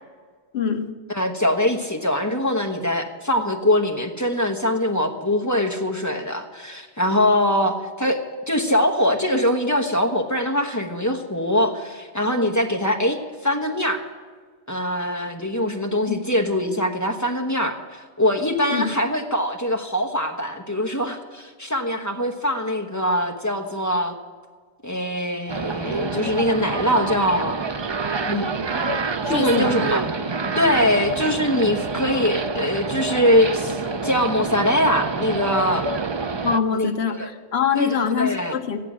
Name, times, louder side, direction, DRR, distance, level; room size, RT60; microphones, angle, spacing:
voice 1, 0.5-0.9 16.1-16.2 18.7-18.9 29.2-29.8 36.4-38.8, left 6 dB, 70° left, 6 dB, 1.2 m, -24 dB
voice 2, 1.1-8.2 8.5-14.0 14.7-24.1 24.8-27.6 28.2-28.5 29.3-30.1 30.5-35.8 36.7-37.3 37.7-38.5, left 1 dB, 15° left, 3 dB, 1.0 m, -22 dB
sound 1, 25.5-36.6, right 4 dB, 35° right, 0.4 m, -27 dB
14.0 x 10.5 x 6.1 m, 1.5 s
omnidirectional pair, 1.1 m